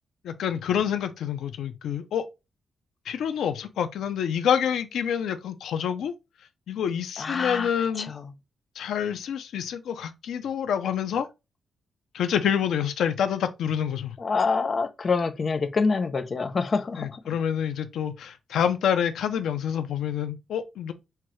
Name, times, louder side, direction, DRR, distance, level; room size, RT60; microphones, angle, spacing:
voice 1, 0.2-2.2 3.1-6.1 6.7-8.1 8.8-11.3 12.1-14.1 17.0-20.9, left 8 dB, 90° left, 0.5 m, -27 dB
voice 2, 7.2-7.7 8.0-8.3 14.2-17.2, left 4 dB, 30° left, 0.5 m, -26 dB
5.7 x 2.3 x 3.1 m
wide cardioid pair, 175°, 0 cm